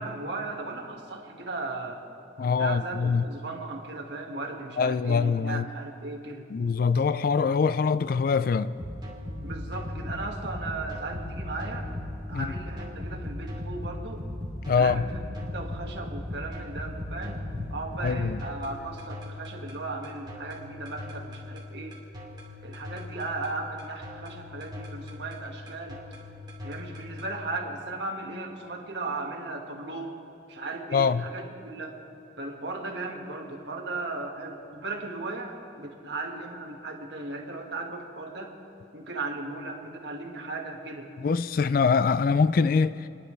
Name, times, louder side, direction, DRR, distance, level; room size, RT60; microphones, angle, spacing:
voice 1, 0.0-2.0 2.4-6.5 9.4-11.9 12.3-14.3 14.8-15.2 15.5-17.4 17.7-22.0 22.6-26.0 26.6-30.1 30.5-31.9 32.4-38.5 38.9-41.1, right 2 dB, 65° right, 1.8 m, -36 dB
voice 2, 2.4-3.3 4.8-5.7 6.5-8.7 12.3-12.5 14.7-15.1 17.5-17.7 18.0-18.4 30.9-31.3 41.2-43.1, left 5 dB, 50° left, 0.3 m, -24 dB
sound 1, 8.8-27.3, left 1 dB, 25° right, 2.8 m, -38 dB
30.0 x 11.0 x 3.3 m
head